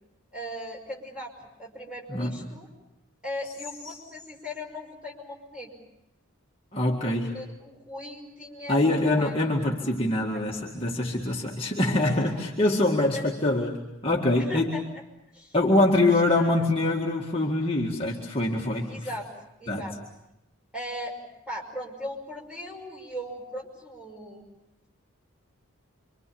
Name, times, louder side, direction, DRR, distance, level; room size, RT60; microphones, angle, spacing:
voice 1, 0.3-1.3 1.6-2.7 3.2-5.7 7.0-9.3 10.3-10.5 12.3-12.4 13.0-13.2 14.4-15.0 15.3-15.6 15.9-16.6 18.9-19.3 19.6-20.0 20.7-21.2 21.5-24.4, equal, 5° right, -1 dB, 5.7 m, -38 dB
voice 2, 6.7-7.3 8.7-14.7 15.5-18.9 19.7-19.8, left 2 dB, 25° left, -2 dB, 2.0 m, -24 dB
28.0 x 25.0 x 7.1 m, 0.86 s
head